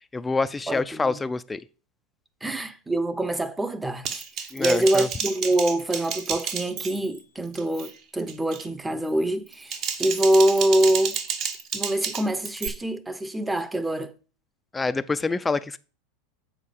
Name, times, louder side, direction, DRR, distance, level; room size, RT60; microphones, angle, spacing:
voice 1, 0.1-1.6 2.4-2.6 4.5-5.1 14.7-15.8, left 3 dB, 15° left, 0.5 m, -26 dB
voice 2, 0.7-1.2 2.4-4.2 4.6-11.2 11.7-14.1, right 1 dB, 10° right, 0.9 m, -25 dB
Typing, 4.0-7.2 7.5-7.9 8.3-8.7 9.5-12.7, right 7 dB, 50° right, 1.5 m, -31 dB
7.5 x 4.7 x 6.6 m
hypercardioid pair, 90°, 0 cm